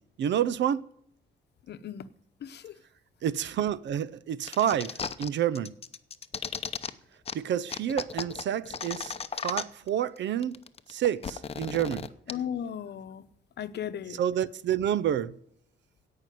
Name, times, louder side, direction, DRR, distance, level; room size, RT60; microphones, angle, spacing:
voice 1, 0.2-0.8 3.2-5.7 7.3-9.1 9.4-10.6 10.9-12.1 14.1-15.4, right 10 dB, 70° right, 0.6 m, -29 dB
voice 2, 1.7-2.1 2.4-2.8 12.3-13.2 13.6-14.2, left 9 dB, 60° left, 0.9 m, -36 dB
sound 1, 4.5-5.3 5.6-6.9 7.3-7.4 7.7-9.9 10.2-10.3 10.4-12.3, left 6 dB, 30° left, 0.7 m, -35 dB
17.0 x 5.7 x 9.2 m
wide cardioid pair, 145°, 19 cm